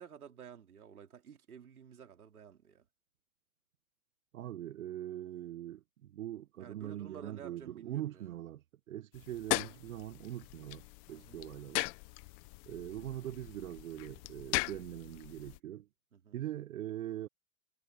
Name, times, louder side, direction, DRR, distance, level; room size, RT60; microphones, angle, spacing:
voice 1, 0.0-2.9 6.6-8.4 11.1-11.4 16.1-16.4, right 7 dB, 90° right, 4.0 m, -52 dB
voice 2, 4.3-11.8 12.7-15.9 16.3-17.3, right 12 dB, 70° right, 1.0 m, -42 dB
sound 1, 9.1-15.6, left 24 dB, 25° left, 0.6 m, -39 dB
hypercardioid pair, 140°, 43 cm